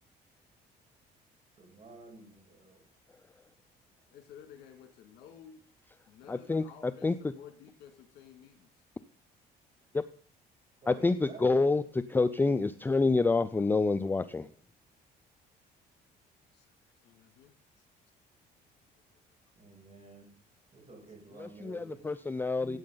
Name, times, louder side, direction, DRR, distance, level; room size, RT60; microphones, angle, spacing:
voice 1, 1.6-2.8 10.8-11.8 19.6-20.3 20.7-22.1 22.6-22.8, right 3 dB, 40° right, -1 dB, 7.1 m, -51 dB
voice 2, 4.1-5.6 6.1-8.7 16.5-16.7 17.0-17.9 19.0-19.1, left 8 dB, 80° left, 5 dB, 2.1 m, -53 dB
voice 3, 6.3-6.6 7.0-7.1 9.9-10.0 10.9-11.8 12.1-14.5 21.4-22.8, left 3 dB, 10° left, 13 dB, 0.4 m, -27 dB
14.0 x 8.5 x 3.9 m, 0.42 s
cardioid pair, 110°, 17 cm